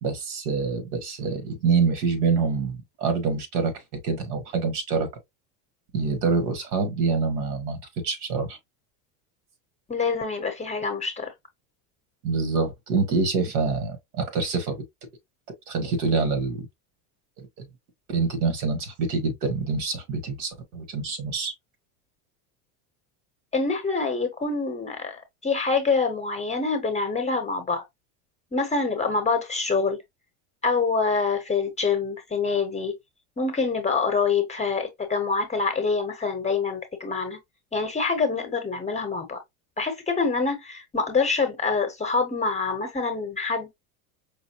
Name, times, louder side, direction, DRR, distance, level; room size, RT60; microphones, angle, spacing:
voice 1, 0.0-5.1 5.9-8.6 12.2-14.8 15.7-16.6 17.4-17.7 18.1-21.5, right 4 dB, 75° right, 1.5 m, -26 dB
voice 2, 9.9-11.3 23.5-27.8 28.5-30.0 30.6-32.9 33.4-37.4 37.7-39.4 39.8-43.8, left 4 dB, 15° left, 0.8 m, -26 dB
5.1 x 2.0 x 2.9 m
supercardioid pair, 130°, 44 cm